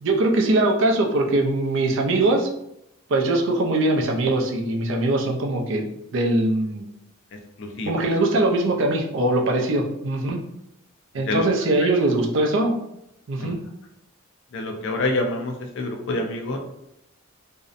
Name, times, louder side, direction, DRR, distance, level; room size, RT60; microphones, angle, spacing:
voice 1, 0.0-2.5 3.1-6.9 7.9-10.4 11.1-12.7 13.3-13.6, right 2 dB, 65° right, 1 dB, 0.4 m, -21 dB
voice 2, 7.6-7.9 11.3-11.5 11.8-11.9 13.4-13.5 14.5-16.6, left 2 dB, 65° left, 3 dB, 0.4 m, -27 dB
2.6 x 2.0 x 2.4 m, 0.81 s
head